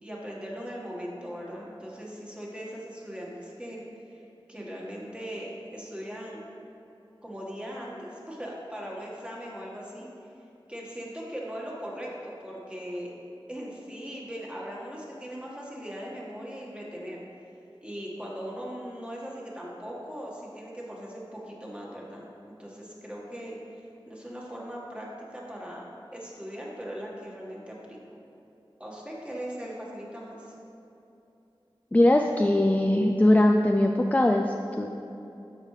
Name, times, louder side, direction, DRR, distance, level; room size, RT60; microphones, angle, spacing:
voice 1, 0.0-3.8 4.1-4.2 4.5-6.4 7.2-10.1 10.7-13.1 13.5-17.2 17.8-22.3 22.6-25.8 26.1-28.0 28.8-30.5, equal, 10° right, -4 dB, 1.7 m, -39 dB
voice 2, 31.9-34.9, left 1 dB, 15° left, 3 dB, 0.4 m, -21 dB
13.0 x 5.2 x 3.3 m, 2.9 s
wide cardioid pair, 65°, 9 cm